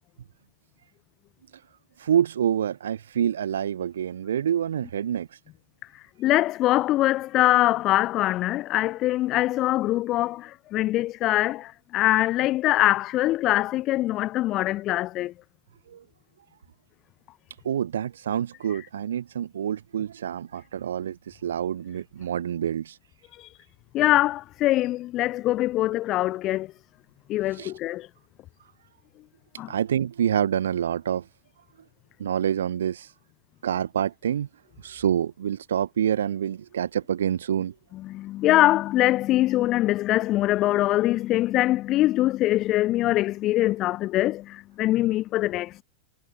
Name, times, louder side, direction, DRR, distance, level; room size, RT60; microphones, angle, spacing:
voice 1, 2.0-5.4 15.9-16.0 17.6-23.0 27.5-27.7 29.7-31.2 32.2-33.1 33.6-34.5 34.8-37.7, right 9 dB, 65° right, 0.9 m, -27 dB
voice 2, 5.9-15.3 18.7-18.8 23.4-23.6 23.9-26.7 27.3-28.1 29.6-29.7 37.9-45.8, left 16 dB, 35° left, 0.3 m, -23 dB
figure-of-eight pair, 90°, 0 cm